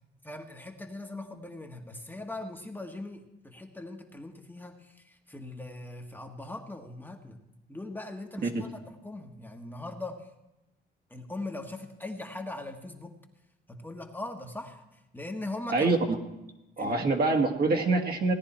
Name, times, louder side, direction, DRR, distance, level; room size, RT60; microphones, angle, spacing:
voice 1, 0.2-7.4 7.7-10.3 11.1-13.2 13.7-14.8 15.1-15.9 16.8-17.1 18.2-18.3, left 2 dB, 10° left, 2 dB, 1.4 m, -40 dB
voice 2, 16.8-18.3, right 3 dB, 50° right, 2 dB, 1.8 m, -25 dB
17.5 x 10.0 x 4.3 m, 0.97 s
cardioid pair, 90°, 20 cm